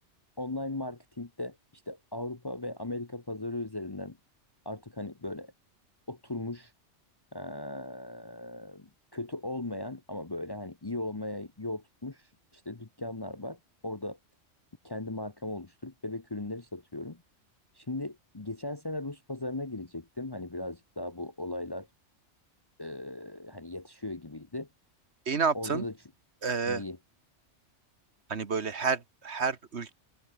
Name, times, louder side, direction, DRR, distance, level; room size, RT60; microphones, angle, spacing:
voice 1, 0.4-1.6 1.9-4.2 4.6-5.5 6.1-6.7 7.3-12.3 12.5-14.2 14.8-17.2 17.7-21.9 22.8-24.7 25.5-25.9 26.7-27.0, left 2 dB, 20° left, 0.9 m, -38 dB
voice 2, 25.2-25.8 26.4-26.8 28.3-29.9, right 5 dB, 65° right, 1.8 m, -30 dB
open air
omnidirectional pair, 1.2 m